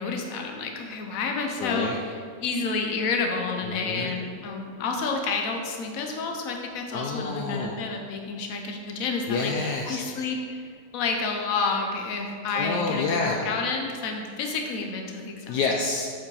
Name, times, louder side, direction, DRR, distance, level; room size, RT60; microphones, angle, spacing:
voice 1, 0.0-9.5 9.9-10.7 10.9-15.6, left 4 dB, 60° left, 2 dB, 1.2 m, -30 dB
voice 2, 1.6-2.0 3.6-4.1 6.9-7.7 9.3-10.0 12.5-13.4 15.5-16.1, left 4 dB, 75° left, 0 dB, 1.2 m, -28 dB
7.1 x 6.1 x 4.8 m, 2.1 s
omnidirectional pair, 1.8 m